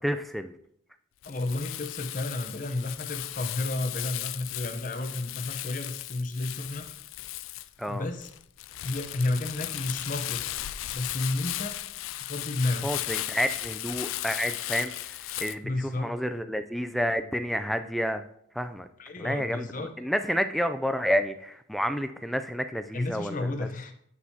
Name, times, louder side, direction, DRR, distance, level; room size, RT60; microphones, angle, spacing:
voice 1, 0.0-0.5 7.8-8.1 12.8-18.3 18.5-18.9 19.2-23.7, equal, ahead, 9 dB, 0.3 m, -30 dB
Crumpling crinkling, 1.2-15.5, left 15 dB, 85° left, 0.4 m, -36 dB
voice 2, 1.2-6.9 7.9-8.3 8.8-10.4 10.9-11.7 12.2-12.9 15.6-16.2 19.0-19.9 22.9-23.9, left 2 dB, 40° left, 5 dB, 0.8 m, -31 dB
8.3 x 7.1 x 2.8 m, 0.70 s
head